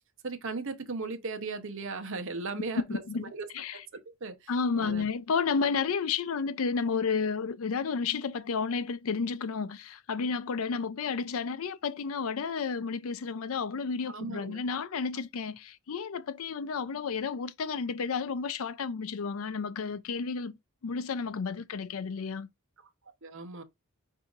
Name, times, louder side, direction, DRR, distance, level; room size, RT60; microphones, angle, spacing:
voice 1, 0.2-4.5 4.8-5.0 14.1-14.6 23.2-23.6, right 3 dB, 60° right, 0.8 m, -37 dB
voice 2, 2.9-3.8 4.5-20.6 20.8-22.5, left 5 dB, 75° left, 0.5 m, -32 dB
4.8 x 2.7 x 3.9 m
head